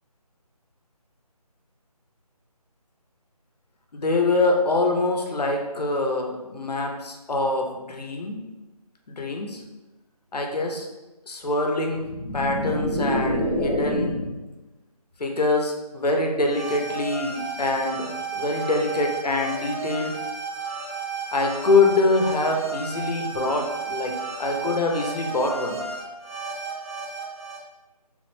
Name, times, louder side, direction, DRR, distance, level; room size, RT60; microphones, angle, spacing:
voice 1, 3.9-8.4 9.2-9.6 10.3-10.9 11.3-12.0 12.3-14.1 15.2-20.1 21.3-24.1 24.4-25.8, left 3 dB, 80° left, 2 dB, 0.7 m, -24 dB
sound 1, 11.9-14.4, equal, 15° left, 0.6 m, -27 dB
sound 2, 16.4-27.6, right 5 dB, 45° right, 0.8 m, -33 dB
3.6 x 2.1 x 3.1 m, 1.1 s
figure-of-eight pair, 180°, 20 cm